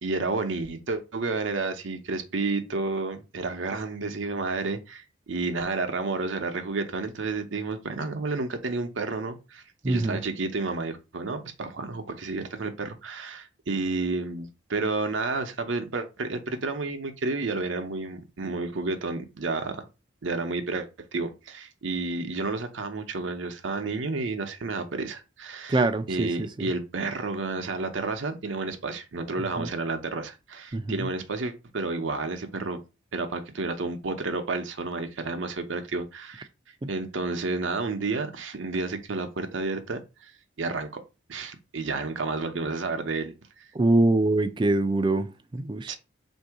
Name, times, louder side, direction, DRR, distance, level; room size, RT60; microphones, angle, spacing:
voice 1, 0.0-19.9 20.2-25.8 26.1-32.8 33.1-36.5 36.9-40.3 40.6-40.9 41.3-43.7 45.9-46.0, right 3 dB, 75° right, 0.7 m, -31 dB
voice 2, 9.8-10.2 25.7-26.7 29.6-29.7 30.7-31.1 36.8-36.9 43.7-46.0, right 2 dB, 25° right, 0.3 m, -24 dB
3.7 x 2.6 x 4.6 m
head